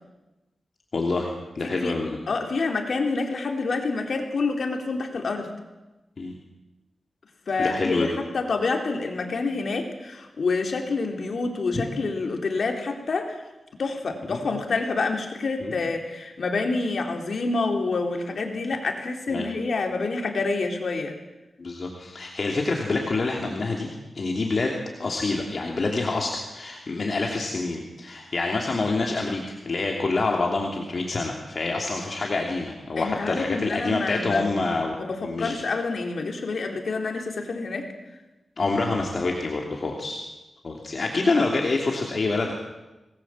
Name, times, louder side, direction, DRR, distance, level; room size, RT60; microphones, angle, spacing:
voice 1, 0.9-2.2 6.2-6.3 7.6-8.1 14.3-14.4 15.6-15.8 19.3-19.5 21.6-23.9 24.1-34.9 35.2-35.6 38.6-40.2 40.6-42.5, left 3 dB, 45° left, 0 dB, 3.0 m, -27 dB
voice 2, 1.6-2.0 2.3-5.5 7.5-13.4 13.8-21.2 33.0-34.5 35.0-37.9, left 3 dB, 60° left, 3 dB, 3.6 m, -27 dB
26.5 x 20.0 x 7.6 m, 1.1 s
wide cardioid pair, 135°, 0 cm